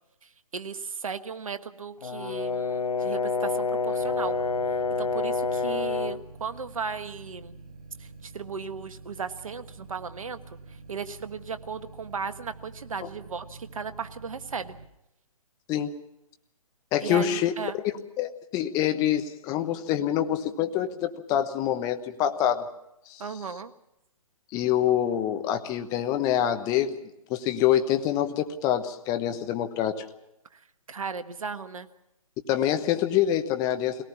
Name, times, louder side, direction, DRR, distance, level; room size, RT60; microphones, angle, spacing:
voice 1, 0.2-4.4 5.0-7.6 8.0-10.4 10.7-14.8 17.0-17.8 23.2-23.7 30.5-31.9, right 5 dB, 65° right, 10 dB, 1.4 m, -36 dB
Brass instrument, 2.0-6.3, left 4 dB, 90° left, 0.8 m, -28 dB
sound 1, 4.0-14.9, right 3 dB, 80° right, 7.7 m, -47 dB
voice 2, 16.9-17.5 18.2-22.7 23.1-23.2 24.5-27.0 27.3-30.0 32.5-34.0, left 11 dB, 20° left, 8 dB, 1.1 m, -26 dB
22.0 x 18.5 x 7.1 m, 0.84 s
figure-of-eight pair, 135°, 19 cm